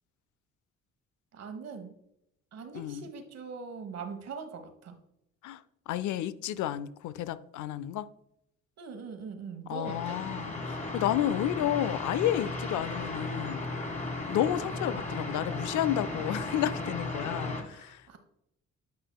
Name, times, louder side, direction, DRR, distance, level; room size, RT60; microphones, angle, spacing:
voice 1, 1.3-2.0 2.5-5.0 8.8-10.2 17.6-18.2, right 5 dB, 60° right, 1.2 m, -42 dB
voice 2, 2.7-3.1 5.4-8.1 9.7-13.6 14.3-18.0, left 12 dB, 80° left, 0.5 m, -31 dB
sound 1, 9.8-17.6, left 2 dB, 25° left, 2.0 m, -35 dB
8.6 x 5.6 x 2.3 m
cardioid pair, 90°, 30 cm